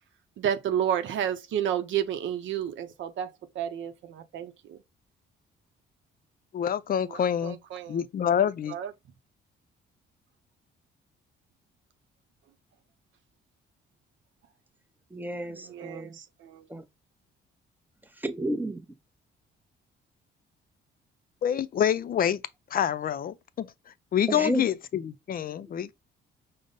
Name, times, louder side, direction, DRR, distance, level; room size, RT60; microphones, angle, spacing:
voice 1, 0.4-4.8 7.1-8.0 8.7-8.9 15.5-16.6, right 9 dB, 70° right, 0.6 m, -31 dB
voice 2, 6.5-7.6 7.9-8.8 21.4-22.4 22.7-23.7 24.1-25.9, left 9 dB, 45° left, 0.5 m, -27 dB
voice 3, 15.1-16.2 16.7-16.8 18.1-18.8 24.3-24.7 25.6-25.7, right 1 dB, 10° right, 0.7 m, -32 dB
5.1 x 2.1 x 3.9 m
cardioid pair, 90°, 20 cm